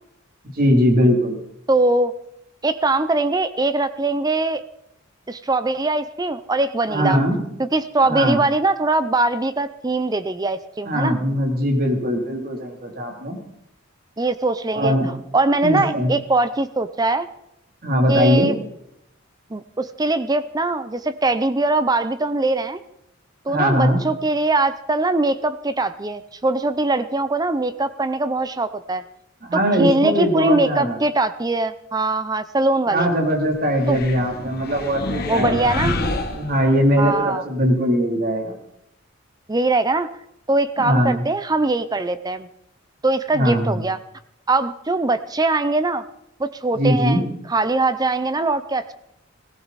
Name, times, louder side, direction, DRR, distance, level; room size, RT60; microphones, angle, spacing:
voice 1, 0.5-1.4 6.9-7.4 8.0-8.4 10.8-13.4 14.7-15.1 15.6-16.1 17.8-18.5 23.5-24.0 29.4-31.0 32.9-35.9 36.3-38.6 40.8-41.2 43.3-43.8 46.7-47.3, equal, 45° right, 2 dB, 3.1 m, -20 dB
voice 2, 1.7-2.1 2.6-4.6 5.3-7.2 7.6-11.2 14.2-14.9 15.3-17.3 18.1-18.6 19.5-22.8 23.5-29.0 29.5-33.1 33.9-34.0 35.3-36.0 37.0-37.4 39.5-40.1 40.5-42.5 43.0-44.0 44.5-46.0 46.4-47.2 47.5-48.9, right 2 dB, 20° right, 12 dB, 0.5 m, -21 dB
Evil Happy Thoughts, 33.7-37.1, left 2 dB, 50° left, 1.9 m, -28 dB
19.0 x 16.5 x 4.1 m, 0.78 s
head